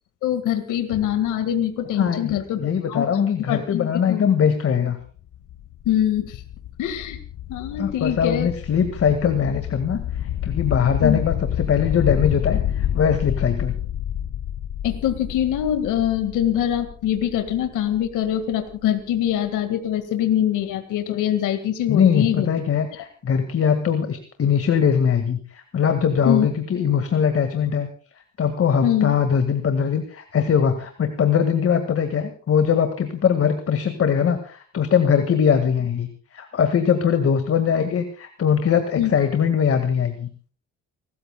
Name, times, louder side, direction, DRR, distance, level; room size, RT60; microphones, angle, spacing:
voice 1, 0.2-2.6 2.9-3.1 3.5-4.2 5.9-6.4 6.8-7.2 7.5-8.5 11.0-11.2 14.8-22.5 26.3-26.5 28.8-29.1 39.0-39.1, left 11 dB, 90° left, 7 dB, 1.9 m, -23 dB
voice 2, 2.0-5.0 7.8-13.8 21.9-27.9 28.4-40.3, left 7 dB, 50° left, 8 dB, 1.9 m, -21 dB
sound 1, 5.0-18.7, left 11 dB, 65° left, 0.8 m, -29 dB
30.0 x 14.0 x 2.3 m, 0.43 s
cardioid pair, 90°, 30 cm